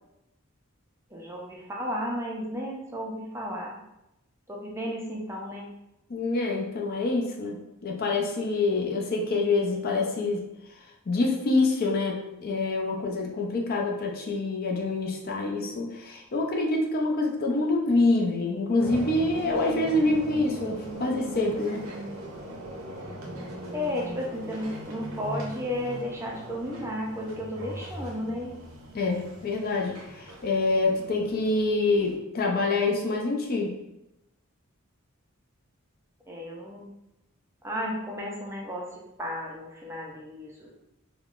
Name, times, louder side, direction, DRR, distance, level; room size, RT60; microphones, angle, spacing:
voice 1, 1.1-3.8 4.5-5.7 23.7-28.5 36.3-36.9 37.6-38.9 39.2-40.7, equal, 15° right, -2 dB, 0.4 m, -33 dB
voice 2, 6.1-10.4 11.1-21.8 28.9-33.7, left 2 dB, 45° left, 1 dB, 0.4 m, -26 dB
sound 1, 18.8-32.1, right 1 dB, 80° right, 0.6 m, -40 dB
3.5 x 2.1 x 2.4 m, 0.90 s
head